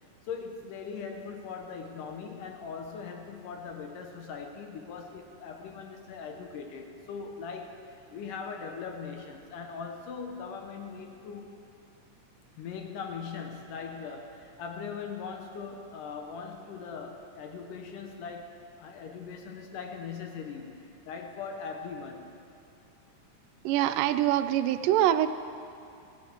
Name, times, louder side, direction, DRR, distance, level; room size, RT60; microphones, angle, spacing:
voice 1, 0.3-7.7 8.1-11.5 12.6-22.3, left 5 dB, 75° left, 3 dB, 2.5 m, -40 dB
voice 2, 23.7-25.3, right 12 dB, 85° right, 11 dB, 2.3 m, -24 dB
17.0 x 16.0 x 4.5 m, 2.5 s
omnidirectional pair, 3.8 m